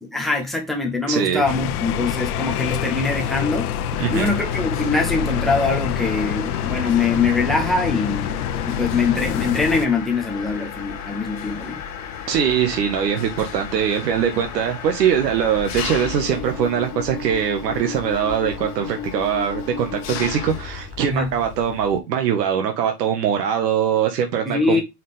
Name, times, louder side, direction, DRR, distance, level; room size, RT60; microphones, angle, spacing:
voice 1, 0.0-3.7 4.1-8.4 8.6-11.8 21.1-21.3 24.5-24.8, left 4 dB, ahead, 0.3 m, -23 dB
voice 2, 1.1-1.4 4.0-4.3 12.3-24.8, right 8 dB, 80° right, 1.5 m, -22 dB
sound 1, 1.5-9.9, left 9 dB, 65° left, 0.8 m, -26 dB
Mechanisms, 3.9-22.0, left 7 dB, 35° left, 1.6 m, -33 dB
5.5 x 3.8 x 5.0 m
hypercardioid pair, 130°, 48 cm